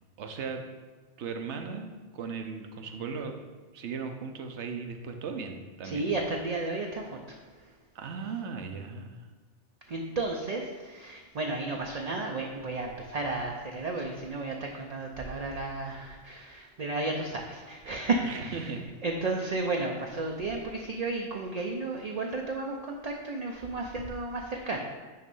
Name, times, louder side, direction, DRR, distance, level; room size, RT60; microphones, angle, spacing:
voice 1, 0.2-0.6 1.2-3.4 3.7-6.1 7.9-9.2 18.2-18.8, right 5 dB, 75° right, 5 dB, 1.1 m, -37 dB
voice 2, 5.8-7.7 9.9-18.7 19.0-24.8, right 3 dB, 45° right, 0 dB, 0.6 m, -33 dB
9.3 x 3.2 x 5.4 m, 1.3 s
omnidirectional pair, 1.2 m